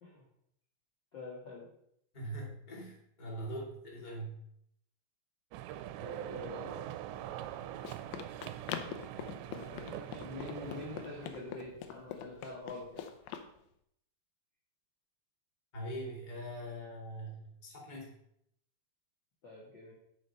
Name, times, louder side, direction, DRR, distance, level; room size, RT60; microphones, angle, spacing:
voice 1, 1.1-1.7 5.7-7.3 9.5-13.1 19.4-19.9, left 2 dB, 55° left, -5 dB, 1.2 m, -46 dB
voice 2, 2.1-4.3 15.7-18.1, right 1 dB, 20° left, -3 dB, 1.4 m, -42 dB
sound 1, 5.5-11.5, right 12 dB, 85° right, 2.7 m, -43 dB
Run, 7.3-13.5, left 9 dB, 80° left, 2.2 m, -44 dB
7.8 x 6.6 x 5.5 m, 0.74 s
omnidirectional pair, 5.1 m